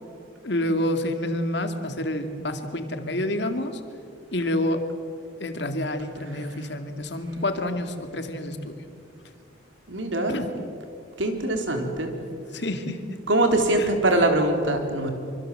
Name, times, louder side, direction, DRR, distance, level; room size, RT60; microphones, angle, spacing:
voice 1, 0.4-3.8 4.3-4.8 5.4-8.8 10.3-10.5 12.5-13.0 13.8-13.9, left 1 dB, 65° left, 7 dB, 2.3 m, -28 dB
voice 2, 9.9-10.4 11.2-12.1 13.3-15.1, right 1 dB, 80° right, 4 dB, 3.9 m, -22 dB
26.0 x 25.0 x 7.8 m, 2.4 s
head